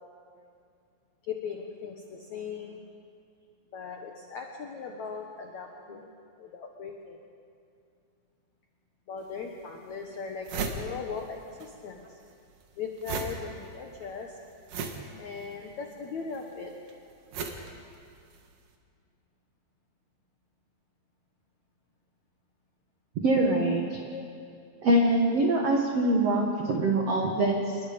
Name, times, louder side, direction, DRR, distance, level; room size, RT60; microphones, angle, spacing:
voice 1, 1.2-2.9 3.7-6.1 6.4-7.2 9.1-12.2 12.8-14.4 15.2-16.8 24.1-24.2, left 5 dB, 85° left, 2 dB, 1.6 m, -39 dB
sound 1, 9.2-9.3 9.8-9.9 10.1-11.7 12.0-18.5, right 5 dB, 60° right, 2.5 m, -37 dB
voice 2, 23.1-24.0 24.8-27.8, right 1 dB, 85° right, 1 dB, 1.3 m, -24 dB
28.5 x 21.5 x 5.3 m, 2.4 s
omnidirectional pair, 5.4 m